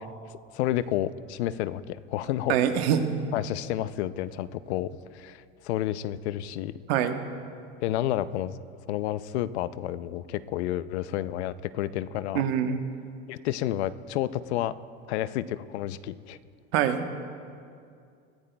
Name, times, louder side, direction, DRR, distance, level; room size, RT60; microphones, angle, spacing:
voice 1, 0.5-2.6 3.3-6.7 7.8-8.6 8.9-12.4 13.3-14.7 15.1-16.4, left 13 dB, 90° left, 15 dB, 0.5 m, -30 dB
voice 2, 2.5-3.1 6.9-7.2 12.3-12.8 16.7-17.2, right 9 dB, 70° right, 7 dB, 1.1 m, -24 dB
22.5 x 14.0 x 2.3 m, 2.3 s
supercardioid pair, 125°, 32 cm